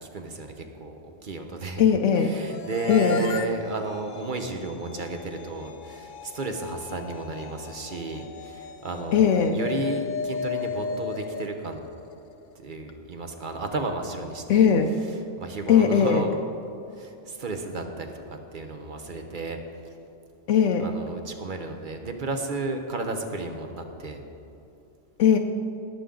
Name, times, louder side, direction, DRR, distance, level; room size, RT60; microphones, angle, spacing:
voice 1, 0.0-1.8 2.1-11.8 12.5-14.7 15.1-16.5 16.9-19.6 19.8-19.9 20.8-24.2, right 2 dB, 45° right, 5 dB, 1.0 m, -33 dB
voice 2, 1.8-2.3 2.9-3.2 9.1-9.6 14.5-14.9 15.7-16.2 20.5-20.9 25.2-25.4, left 7 dB, 80° left, 4 dB, 1.0 m, -19 dB
sound 1, 2.3-12.5, left 6 dB, 60° left, 0.5 m, -36 dB
19.0 x 7.0 x 3.8 m, 2.7 s
omnidirectional pair, 1.2 m